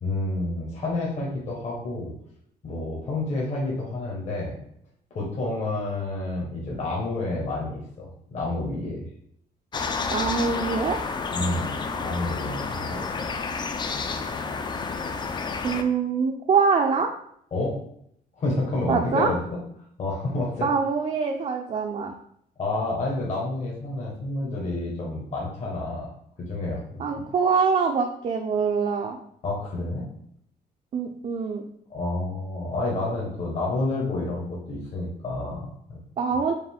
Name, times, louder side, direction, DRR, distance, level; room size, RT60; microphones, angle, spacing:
voice 1, 0.0-2.1 2.6-4.6 5.1-9.0 11.3-11.7 12.0-13.4 17.5-17.8 18.3-19.6 20.0-20.7 22.6-26.1 26.5-27.2 29.4-30.0 31.9-36.0, left 2 dB, 45° left, -4 dB, 1.1 m, -29 dB
sound 1, 9.7-15.8, left 4 dB, 30° left, 0.4 m, -30 dB
voice 2, 10.1-11.0 15.6-17.1 18.9-19.3 20.6-22.1 27.0-29.2 30.9-31.6 36.2-36.5, right 5 dB, 40° right, 3 dB, 0.4 m, -24 dB
4.8 x 2.5 x 3.5 m, 0.70 s
cardioid pair, 140°, 16 cm